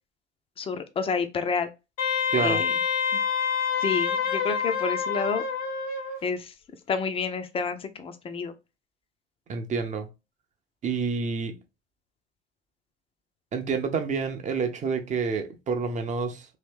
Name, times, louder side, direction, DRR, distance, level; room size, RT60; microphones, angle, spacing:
voice 1, 0.6-1.7 2.4-2.7 3.8-5.4 6.2-6.5 6.9-8.5, left 5 dB, 20° left, 0.5 m, -29 dB
Wind instrument woodwind instrument, 2.0-6.2, left 6 dB, 50° left, 0.7 m, -27 dB
voice 2, 2.3-2.6 9.5-10.1 10.8-11.6 13.5-16.5, right 5 dB, 25° right, 0.6 m, -28 dB
2.9 x 2.7 x 3.5 m
figure-of-eight pair, 70°, 31 cm